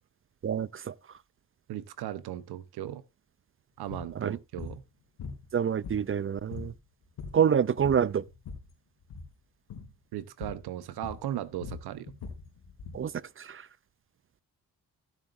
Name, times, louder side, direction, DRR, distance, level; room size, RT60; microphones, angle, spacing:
voice 1, 0.4-0.9 4.2-4.4 5.5-6.7 7.3-8.2 12.9-13.1 13.4-13.6, right 8 dB, 35° right, 0.5 m, -27 dB
voice 2, 1.7-3.0 3.8-4.8 10.1-12.1, right 12 dB, 85° right, 0.9 m, -37 dB
sound 1, 3.9-4.1 4.6-4.8 5.2-6.2 6.5-6.8 7.0-7.5 7.8-8.7 9.0-9.3 9.7-9.9 10.4-10.7 11.0-13.1, left 5 dB, 80° left, 3.3 m, -41 dB
16.0 x 7.4 x 2.6 m
cardioid pair, 65°, 38 cm